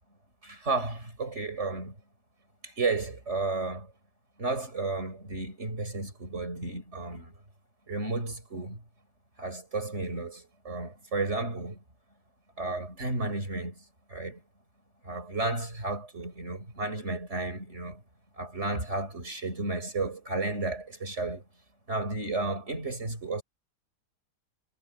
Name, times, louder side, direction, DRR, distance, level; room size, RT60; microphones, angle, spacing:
voice 1, 0.4-1.9 2.6-3.9 4.4-7.3 7.9-8.8 9.4-11.8 12.6-13.8 14.1-14.4 15.0-18.0 18.4-21.4 21.9-23.4, right 3 dB, 35° right, 6.1 m, -33 dB
omnidirectional pair, 2.0 m